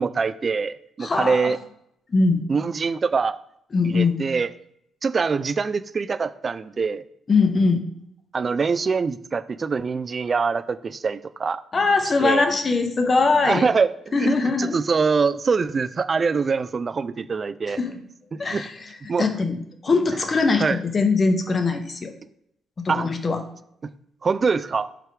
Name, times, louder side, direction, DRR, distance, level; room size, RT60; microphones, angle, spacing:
voice 1, 0.0-1.6 2.5-3.4 3.8-4.5 5.0-7.0 8.3-11.6 12.2-12.4 13.4-13.9 14.2-17.8 18.3-18.6 19.1-19.3 20.6-20.8 22.9-23.1 23.8-23.9 24.2-24.9, right 5 dB, 35° right, 15 dB, 0.4 m, -24 dB
voice 2, 1.0-1.5 2.1-2.4 3.7-4.3 7.3-7.8 11.7-13.7 14.1-14.8 17.7-18.0 18.4-18.7 19.2-19.6 19.8-22.1 22.8-23.4, left 4 dB, 35° left, 7 dB, 0.9 m, -21 dB
5.7 x 5.1 x 4.7 m, 0.75 s
cardioid pair, 90°, 0 cm